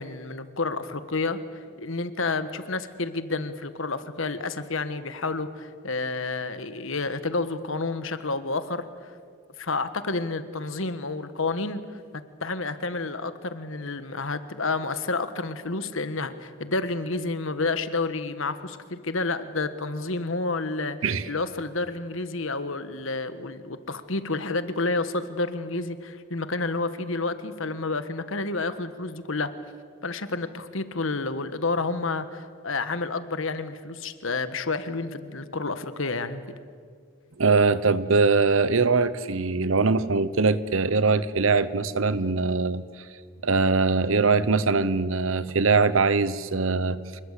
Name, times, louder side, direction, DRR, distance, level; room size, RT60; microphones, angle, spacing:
voice 1, 0.0-8.9 9.6-11.8 12.4-29.5 30.0-36.4, left 3 dB, 70° left, 11 dB, 1.4 m, -30 dB
voice 2, 37.4-42.8 43.4-47.2, right 4 dB, 70° right, 16 dB, 0.9 m, -22 dB
26.5 x 21.0 x 8.3 m, 2.1 s
head